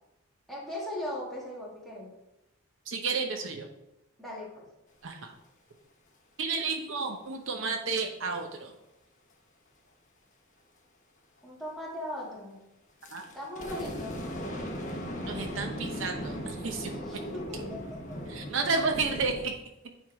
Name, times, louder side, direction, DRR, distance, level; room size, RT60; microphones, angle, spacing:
voice 1, 0.5-2.1 4.2-4.6 11.4-12.6 13.3-14.2 17.1-17.8, left 1 dB, ahead, -6 dB, 2.2 m, -38 dB
voice 2, 2.9-3.7 5.0-5.3 6.4-8.7 13.1-13.3 15.3-16.9 18.3-19.6, right 4 dB, 70° right, 4 dB, 0.8 m, -31 dB
sound 1, 13.0-19.5, equal, 40° left, 1.1 m, -38 dB
9.1 x 3.6 x 4.7 m, 0.89 s
head